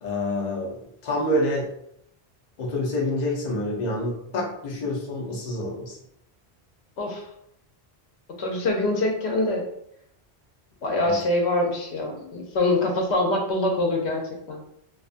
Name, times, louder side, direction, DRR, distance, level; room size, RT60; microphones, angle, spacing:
voice 1, 0.0-1.7 2.6-6.0 11.0-11.2, left 1 dB, 50° left, -3 dB, 0.7 m, -27 dB
voice 2, 8.4-9.6 10.8-14.2 14.5-14.6, left 2 dB, 85° left, 1 dB, 0.9 m, -24 dB
2.4 x 2.4 x 2.4 m, 0.74 s
omnidirectional pair, 1.1 m